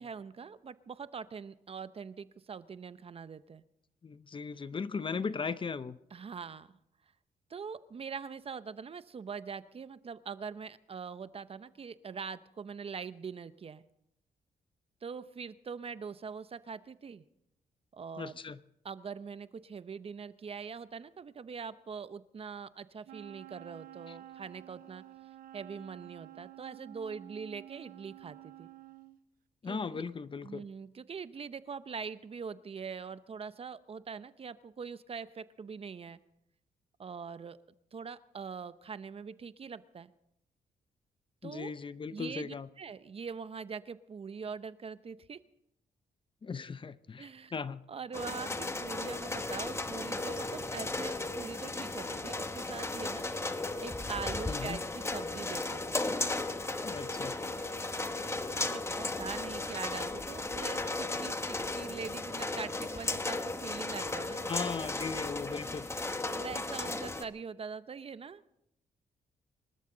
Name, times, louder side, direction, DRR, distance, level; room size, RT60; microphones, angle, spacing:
voice 1, 0.0-3.6 6.1-6.8 7.5-13.8 15.0-17.2 17.9-18.4 18.8-25.0 25.5-28.7 29.6-30.0 30.4-36.2 37.0-37.6 37.9-40.1 41.4-41.7 42.1-45.4 47.2-47.5 47.9-53.3 53.8-56.0 58.5-64.4 66.3-68.4, right 6 dB, 40° right, 0.7 m, -43 dB
voice 2, 4.0-6.0 18.2-18.6 24.1-24.2 29.6-30.7 41.4-42.7 46.4-47.8 54.5-54.8 56.8-57.4 64.5-65.9, left 5 dB, 35° left, 0.6 m, -38 dB
Wind instrument woodwind instrument, 23.1-29.2, right 14 dB, 80° right, 0.7 m, -51 dB
sound 1, 48.1-67.2, left 2 dB, 20° left, 1.1 m, -35 dB
25.5 x 13.0 x 3.9 m
cardioid pair, 90°, 15 cm